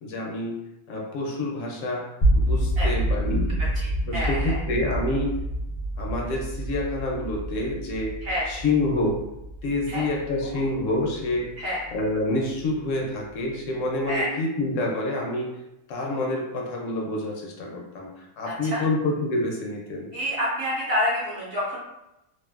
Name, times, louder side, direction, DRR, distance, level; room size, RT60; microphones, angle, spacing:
voice 1, 0.0-3.5 4.1-5.4 6.0-8.2 8.5-9.2 9.6-11.5 11.9-15.6 15.9-20.1, left 2 dB, 70° left, -1 dB, 0.9 m, -28 dB
sound 1, 2.2-12.2, right 1 dB, 45° left, 0.4 m, -27 dB
voice 2, 3.7-4.6 8.2-8.5 9.9-10.1 10.5-10.6 11.6-11.8 14.1-14.3 18.5-18.8 20.1-21.8, left 1 dB, 55° right, -6 dB, 0.8 m, -28 dB
2.6 x 2.4 x 2.4 m, 0.89 s
omnidirectional pair, 1.4 m